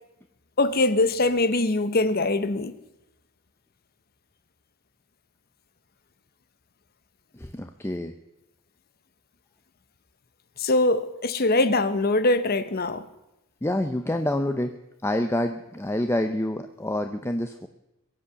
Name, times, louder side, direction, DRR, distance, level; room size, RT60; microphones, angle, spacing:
voice 1, 0.6-2.7 10.6-13.0, left 2 dB, 45° left, 0.9 m, -22 dB
voice 2, 7.3-8.1 13.6-14.7 15.0-17.7, left 1 dB, 10° left, 0.6 m, -27 dB
22.5 x 8.5 x 6.9 m
head